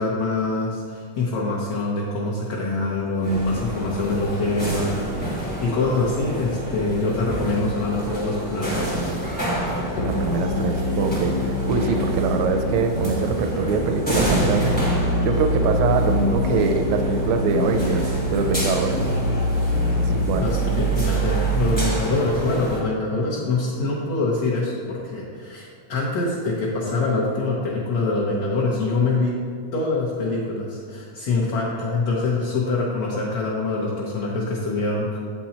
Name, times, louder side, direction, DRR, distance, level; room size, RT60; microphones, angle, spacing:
voice 1, 0.0-9.2 20.4-29.3 29.7-35.2, left 3 dB, 65° left, -4 dB, 1.8 m, -24 dB
sound 1, 3.2-22.8, right 1 dB, 5° left, 0.8 m, -29 dB
sound 2, 10.0-22.0, equal, 85° left, 2.5 m, -25 dB
voice 2, 10.0-14.8 15.2-18.0 18.3-19.1 20.0-20.5, right 5 dB, 80° right, 5 dB, 1.6 m, -23 dB
8.2 x 5.8 x 4.3 m, 2.2 s
omnidirectional pair, 3.7 m